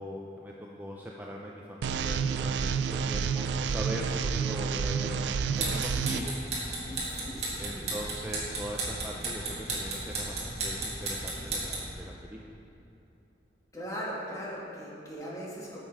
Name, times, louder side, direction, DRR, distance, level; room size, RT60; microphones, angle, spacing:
voice 1, 0.0-6.5 7.5-12.4, equal, 10° right, -2 dB, 0.5 m, -40 dB
sound 1, 1.8-6.2, right 6 dB, 75° right, 0.3 m, -29 dB
sound 2, 5.4-11.9, right 2 dB, 40° right, 1.9 m, -35 dB
voice 2, 6.8-8.0 13.7-15.8, equal, 20° left, -5 dB, 1.7 m, -39 dB
9.1 x 6.5 x 4.6 m, 2.9 s
head